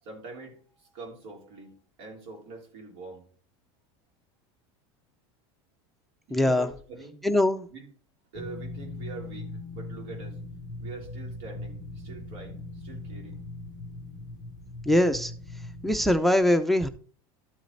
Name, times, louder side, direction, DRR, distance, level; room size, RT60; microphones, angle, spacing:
voice 1, 0.0-1.7 2.0-3.3 6.3-7.2 7.7-7.8 8.3-10.4 10.8-13.4, right 3 dB, 75° right, 3.4 m, -44 dB
voice 2, 6.3-6.7 7.2-7.7 14.9-15.3 15.8-16.9, left 1 dB, ahead, 0.5 m, -22 dB
sound 1, 8.3-16.1, left 2 dB, 30° right, 2.3 m, -40 dB
12.5 x 4.9 x 4.0 m
supercardioid pair, 120°, 13 cm